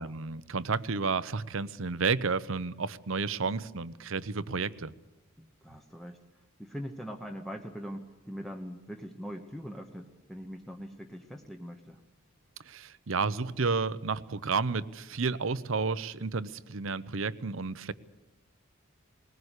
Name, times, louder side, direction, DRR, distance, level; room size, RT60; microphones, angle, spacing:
voice 1, 0.0-4.9 12.6-17.9, right 4 dB, 70° right, 16 dB, 0.8 m, -31 dB
voice 2, 5.4-12.0, equal, ahead, 3 dB, 1.0 m, -42 dB
20.5 x 19.0 x 8.2 m, 1.0 s
head